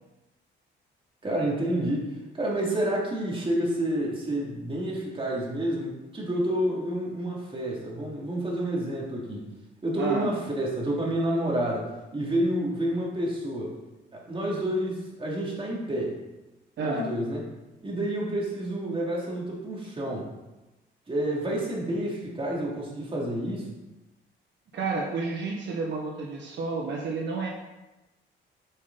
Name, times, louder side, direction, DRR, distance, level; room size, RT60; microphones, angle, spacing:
voice 1, 1.2-9.5 9.8-11.9 12.1-13.8 14.1-16.2 16.8-17.4 17.8-20.3 21.1-23.7, right 1 dB, 25° right, -4 dB, 3.1 m, -29 dB
voice 2, 10.0-10.3 16.8-17.1 24.7-27.5, right 3 dB, 65° right, -2 dB, 1.4 m, -30 dB
9.7 x 5.3 x 4.2 m, 1.1 s
cardioid pair, 90°, 20 cm